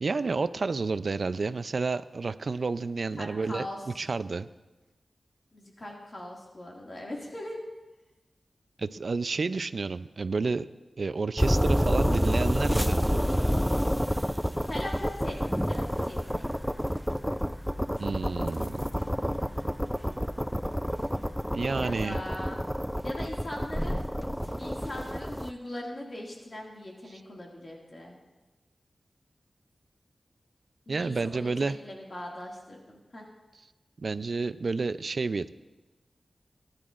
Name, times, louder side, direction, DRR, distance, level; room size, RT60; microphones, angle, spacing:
voice 1, 0.0-3.7 4.0-4.5 8.8-10.7 11.0-13.4 18.0-18.9 21.5-22.2 30.9-31.8 34.0-35.5, right 4 dB, 65° right, 13 dB, 0.4 m, -30 dB
voice 2, 3.2-3.8 5.5-7.6 14.7-15.4 15.7-16.5 21.8-22.6 23.0-24.0 24.6-28.2 30.9-33.3, left 1 dB, 45° left, -2 dB, 2.1 m, -40 dB
sound 1, 11.4-25.5, equal, ahead, 0.4 m, -29 dB
19.0 x 10.5 x 2.5 m, 1.1 s
wide cardioid pair, 60°, 0 cm